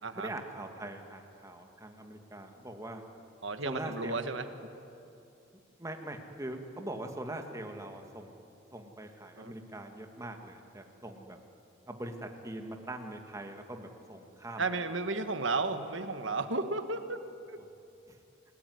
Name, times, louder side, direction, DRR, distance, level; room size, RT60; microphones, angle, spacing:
voice 1, 0.1-3.0 3.6-4.2 5.8-8.4 8.7-11.4 11.9-14.7 18.1-18.2, right 1 dB, 15° right, 4 dB, 2.2 m, -42 dB
voice 2, 3.4-4.5 9.3-9.5 14.6-17.2 17.5-17.6, right 3 dB, 65° right, 8 dB, 1.7 m, -33 dB
29.5 x 19.0 x 9.6 m, 2.7 s
head